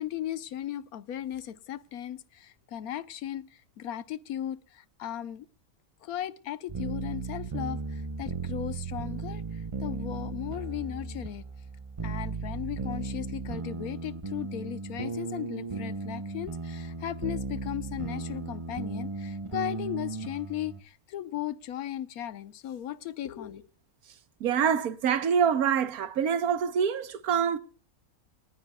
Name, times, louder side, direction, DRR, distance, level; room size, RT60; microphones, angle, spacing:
voice 1, 0.0-5.5 6.0-11.4 12.0-23.7, left 11 dB, 90° left, 1.3 m, -37 dB
sound 1, 6.7-20.8, right 4 dB, 30° right, 0.6 m, -36 dB
voice 2, 24.4-27.6, right 7 dB, 90° right, 1.4 m, -25 dB
28.5 x 9.7 x 2.2 m
omnidirectional pair, 1.5 m